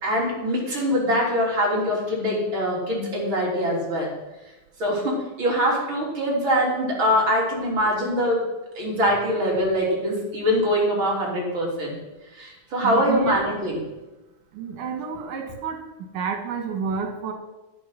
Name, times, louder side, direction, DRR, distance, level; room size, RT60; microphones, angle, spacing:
voice 1, 0.0-4.1 4.8-8.4 8.8-12.0 12.3-13.8, equal, 40° right, -3 dB, 4.1 m, -23 dB
voice 2, 12.8-13.4 14.6-15.8 16.1-17.3, right 6 dB, 85° right, 5 dB, 3.1 m, -29 dB
11.5 x 9.9 x 5.7 m, 1.0 s
omnidirectional pair, 3.5 m